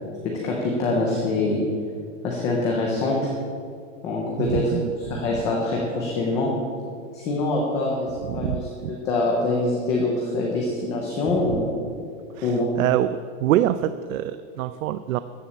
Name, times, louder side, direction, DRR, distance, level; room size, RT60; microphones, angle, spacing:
voice 1, 0.4-1.6 2.2-3.3 4.0-6.5 7.1-8.1 8.3-8.6 8.9-11.7 12.4-12.7, left 2 dB, 10° left, -2 dB, 0.4 m, -24 dB
voice 2, 4.4-4.9 8.2-9.0 12.3-13.1 13.4-15.2, right 13 dB, 85° right, 13 dB, 0.6 m, -25 dB
13.5 x 6.9 x 8.5 m, 2.2 s
supercardioid pair, 180°, 39 cm